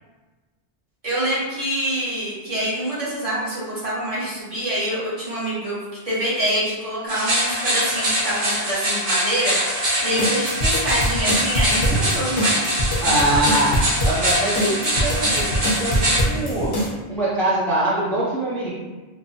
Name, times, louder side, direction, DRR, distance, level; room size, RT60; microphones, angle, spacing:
voice 1, 1.0-5.8 6.0-12.8, equal, 35° right, -10 dB, 1.1 m, -26 dB
sound 1, 7.1-16.2, right 1 dB, 80° right, 1.3 m, -23 dB
sound 2, 10.2-16.9, equal, 70° left, 1.0 m, -24 dB
voice 2, 13.0-16.7 17.1-18.7, right 1 dB, ahead, -9 dB, 0.5 m, -23 dB
3.0 x 2.2 x 2.7 m, 1.2 s
omnidirectional pair, 1.0 m